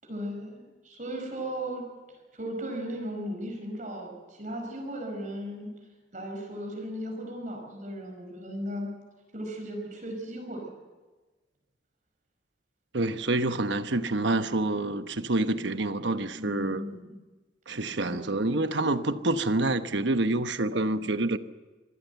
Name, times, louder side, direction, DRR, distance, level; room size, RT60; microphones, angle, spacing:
voice 1, 0.0-1.8 2.3-5.7 6.1-8.9 9.3-10.7 16.3-17.2 18.0-18.6, equal, 40° right, 5.1 m, -36 dB
voice 2, 12.9-16.8 17.7-21.4, right 2 dB, 70° right, 1.1 m, -27 dB
25.0 x 16.5 x 8.1 m
head